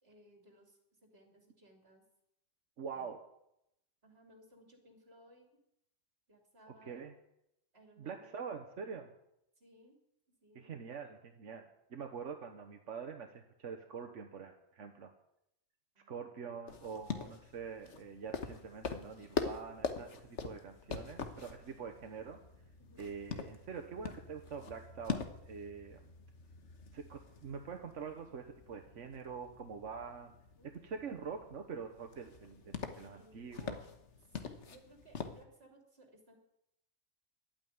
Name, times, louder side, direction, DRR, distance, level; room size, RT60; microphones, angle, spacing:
voice 1, 0.0-2.0 2.9-3.1 4.0-5.5 6.3-7.0 7.7-8.6 9.6-10.0 10.4-10.8 15.9-16.3 22.8-23.1 30.6-30.7 33.0-33.7 34.2-36.4, equal, 55° right, 2 dB, 3.4 m, -62 dB
voice 2, 2.8-3.2 6.8-7.1 8.0-9.1 10.5-15.1 16.1-22.4 23.0-26.0 26.9-30.3 30.8-33.8, right 6 dB, 90° right, 4 dB, 1.4 m, -45 dB
sound 1, 16.7-35.4, left 5 dB, 75° left, 1.5 m, -44 dB
12.0 x 9.0 x 9.4 m, 0.80 s
omnidirectional pair, 1.2 m